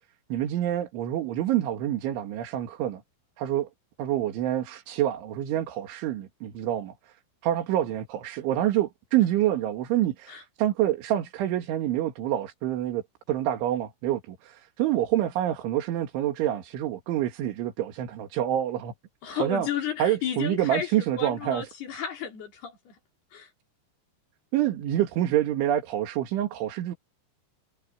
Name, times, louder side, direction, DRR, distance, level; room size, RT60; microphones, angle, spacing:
voice 1, 0.3-3.0 3.4-3.7 4.0-7.1 7.4-13.0 13.3-18.9 19.3-19.7 20.0-21.6 24.5-27.0, right 12 dB, 80° right, 4.5 m, -27 dB
voice 2, 19.2-23.0 23.3-23.5, left 7 dB, 55° left, 6.1 m, -33 dB
omnidirectional pair, 5.4 m